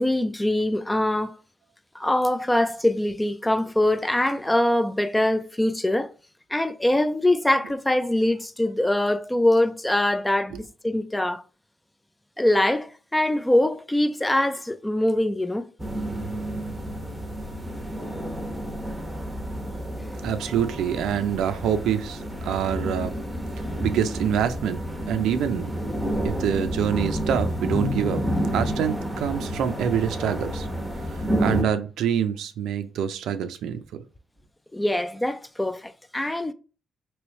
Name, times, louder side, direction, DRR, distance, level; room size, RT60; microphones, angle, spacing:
voice 1, 0.0-1.4 1.9-6.1 6.5-11.4 12.4-15.7 20.0-20.2 34.7-36.5, left 1 dB, 10° left, 0.3 m, -23 dB
sound 1, 15.8-31.6, equal, 10° right, 0.8 m, -30 dB
voice 2, 20.2-23.1 23.8-24.8 25.1-25.7 26.2-28.2 28.5-30.7 31.1-33.8, right 9 dB, 80° right, 0.4 m, -26 dB
3.2 x 3.0 x 3.0 m
cardioid pair, 90°, 0 cm